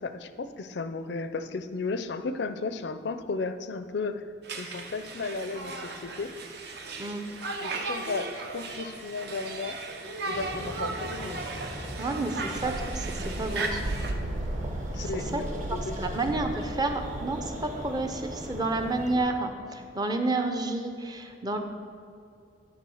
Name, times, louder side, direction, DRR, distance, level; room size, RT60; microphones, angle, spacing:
voice 1, 0.0-6.3 7.6-9.8 10.3-11.4 14.9-16.3, left 3 dB, 65° left, 10 dB, 0.5 m, -34 dB
Conversation, 4.4-14.1, right 3 dB, 60° right, 0.8 m, -36 dB
sound 1, 10.3-19.2, equal, 40° right, 1.0 m, -38 dB
voice 2, 12.0-13.8 14.9-15.0 15.3-15.4 16.0-21.6, right 2 dB, 20° right, 5 dB, 0.6 m, -30 dB
sound 2, 12.5-19.2, right 2 dB, 85° right, 0.5 m, -37 dB
10.5 x 3.6 x 6.3 m, 2.4 s
head